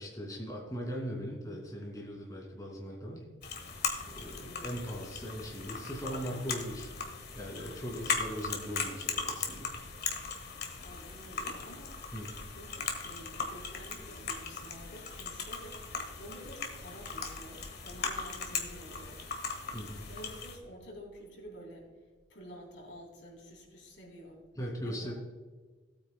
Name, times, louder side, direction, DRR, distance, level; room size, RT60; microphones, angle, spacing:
voice 1, 0.0-3.2 4.1-6.9 7.3-9.7 12.1-12.3 19.7-20.0 24.6-25.1, equal, 20° left, -1 dB, 2.2 m, -39 dB
sound 1, 3.4-20.5, left 5 dB, 60° left, 1.5 m, -38 dB
voice 2, 4.4-4.8 6.1-6.6 10.8-11.9 12.5-15.8 16.2-19.2 20.1-21.9 22.3-24.4 24.8-25.1, equal, 85° left, -1 dB, 3.3 m, -49 dB
17.5 x 8.8 x 2.2 m, 1.4 s
head